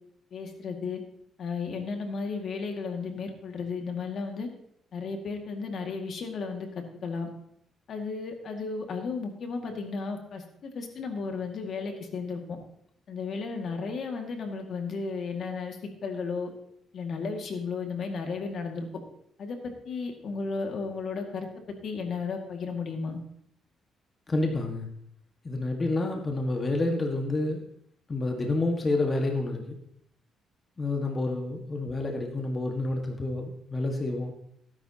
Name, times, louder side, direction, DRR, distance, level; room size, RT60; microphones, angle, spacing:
voice 1, 0.3-1.0 1.4-4.5 4.9-7.3 7.9-12.4 13.1-16.5 16.9-18.9 19.4-23.2, left 4 dB, 60° left, 4 dB, 2.0 m, -34 dB
voice 2, 24.3-24.9 25.4-27.6 28.1-29.8 30.8-34.3, left 2 dB, 30° left, 2 dB, 1.6 m, -29 dB
17.0 x 10.0 x 2.9 m, 0.71 s
cardioid pair, 90°, 0 cm